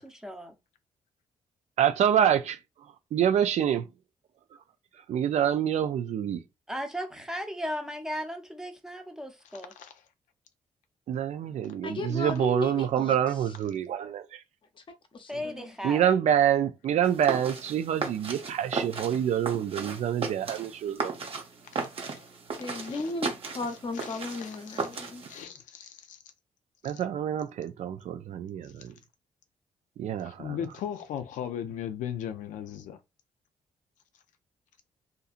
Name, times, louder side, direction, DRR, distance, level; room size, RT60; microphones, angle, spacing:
voice 1, 1.8-2.6 3.1-3.9 5.1-6.4 11.1-14.4 15.8-21.1 26.8-28.9 30.0-30.6, right 9 dB, 65° right, 0.4 m, -26 dB
voice 2, 6.7-9.7 15.3-16.1, equal, 5° right, 0.7 m, -36 dB
voice 3, 9.5-9.9 15.3-15.5 22.6-23.1 24.0-24.8 25.3-26.2 30.2-33.0, left 9 dB, 85° left, 0.4 m, -38 dB
voice 4, 11.8-13.2 14.8-14.9 15.1-15.7 22.6-25.2, left 2 dB, 40° left, 0.7 m, -35 dB
sound 1, 17.0-25.4, right 4 dB, 50° right, 0.7 m, -36 dB
2.7 x 2.5 x 2.4 m
cardioid pair, 85°, 13 cm